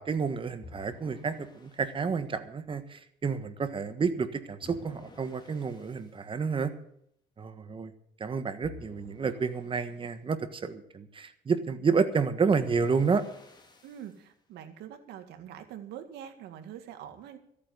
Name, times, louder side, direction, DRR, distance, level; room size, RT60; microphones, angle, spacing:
voice 1, 0.0-6.7 7.4-7.9 8.2-13.2, right 5 dB, 30° right, 10 dB, 1.5 m, -30 dB
sound 1, 0.6-2.0 4.6-6.1 8.6-10.0 12.6-14.2, left 2 dB, 25° left, 2.7 m, -51 dB
voice 2, 13.8-17.4, right 10 dB, 80° right, 8 dB, 2.0 m, -44 dB
14.0 x 8.7 x 8.0 m, 0.71 s
cardioid pair, 110°, 17 cm